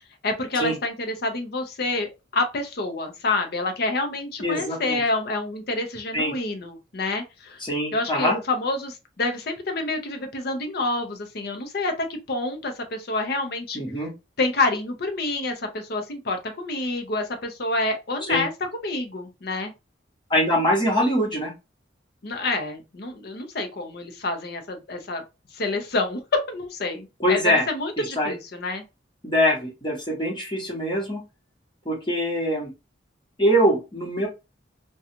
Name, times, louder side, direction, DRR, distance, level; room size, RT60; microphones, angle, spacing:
voice 1, 0.2-7.6 7.9-13.8 14.4-19.7 22.2-25.2 25.5-28.8, left 2 dB, 60° left, 0.7 m, -28 dB
voice 2, 4.4-5.0 6.1-6.3 7.6-8.4 13.7-14.1 18.3-18.4 20.3-21.5 27.2-27.7 28.0-28.3 29.2-31.2 31.8-32.7 33.4-34.3, equal, 25° left, 1.2 m, -23 dB
2.5 x 2.3 x 2.7 m
head